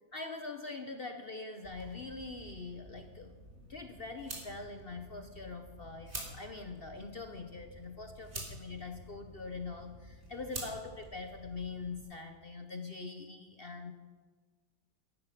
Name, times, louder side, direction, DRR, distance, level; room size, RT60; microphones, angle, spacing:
voice 1, 0.1-13.9, left 3 dB, 50° left, 6 dB, 0.7 m, -43 dB
sound 1, 1.6-12.0, right 1 dB, 35° right, 3.5 m, -48 dB
14.5 x 12.0 x 5.9 m, 1.4 s
omnidirectional pair, 2.1 m